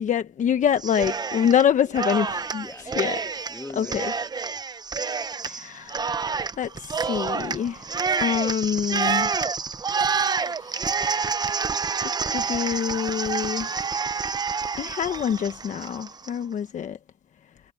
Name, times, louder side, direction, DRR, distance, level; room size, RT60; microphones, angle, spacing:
voice 1, 0.0-2.6 3.0-3.2 3.8-4.1 5.5-6.1 6.6-7.9 8.2-9.3 12.0-13.8 14.8-17.0, left 8 dB, 45° left, 1.2 m, -25 dB
Cheering, 0.8-1.6 1.9-16.3, right 5 dB, 25° right, 0.8 m, -28 dB
voice 2, 2.6-4.6, left 2 dB, 10° left, 2.6 m, -42 dB
cardioid pair, 110°, 17 cm